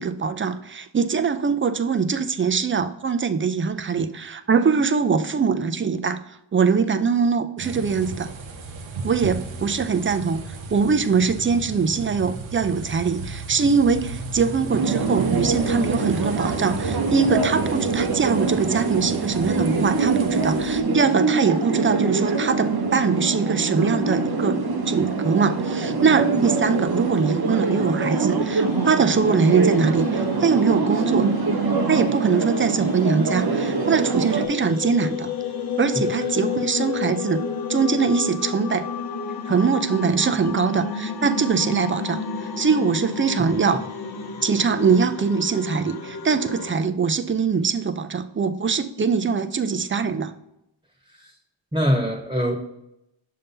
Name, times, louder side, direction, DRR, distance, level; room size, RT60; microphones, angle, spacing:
voice 1, 0.0-6.2 6.5-8.3 9.0-24.6 24.9-31.3 31.9-35.3 35.8-38.9 39.5-42.2 42.6-43.9 44.4-50.3, right 5 dB, 30° right, 10 dB, 0.4 m, -22 dB
sound 1, 7.6-20.8, right 3 dB, 85° right, 0.7 m, -35 dB
sound 2, 14.7-34.5, right 4 dB, 55° right, 0.8 m, -24 dB
sound 3, 28.5-46.7, left 5 dB, 50° left, 0.8 m, -32 dB
voice 2, 51.7-52.6, equal, 10° right, 1 dB, 1.1 m, -23 dB
6.6 x 2.8 x 5.3 m, 0.83 s
wide cardioid pair, 75°, 45 cm